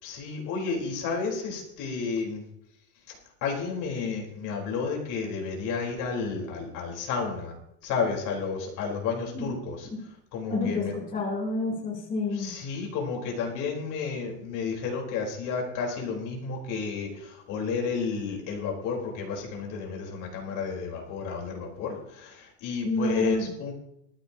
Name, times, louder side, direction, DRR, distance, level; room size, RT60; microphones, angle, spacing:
voice 1, 0.0-2.4 3.1-3.2 3.4-7.5 7.8-9.9 10.3-10.9 12.3-23.7, left 5 dB, 40° left, -1 dB, 4.3 m, -31 dB
voice 2, 10.5-10.9 11.1-12.5 22.8-23.5, left 2 dB, 15° left, -3 dB, 3.6 m, -28 dB
19.0 x 14.0 x 2.9 m, 0.79 s
supercardioid pair, 150°, 46 cm